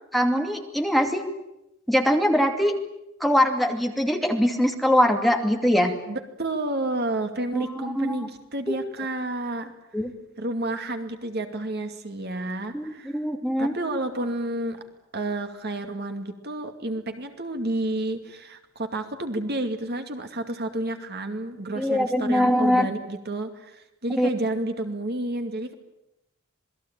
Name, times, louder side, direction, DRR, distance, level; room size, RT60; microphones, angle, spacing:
voice 1, 0.1-1.2 1.9-2.7 3.2-5.9 7.5-7.7 8.0-8.3 8.7-8.8 9.9-10.1 12.7-13.7 21.8-22.9 24.2-24.3, equal, ahead, 3 dB, 2.6 m, -22 dB
voice 2, 6.1-9.7 10.4-13.2 13.6-14.8 15.1-25.7, right 1 dB, 50° right, 6 dB, 2.4 m, -30 dB
27.5 x 20.5 x 9.0 m, 0.87 s
head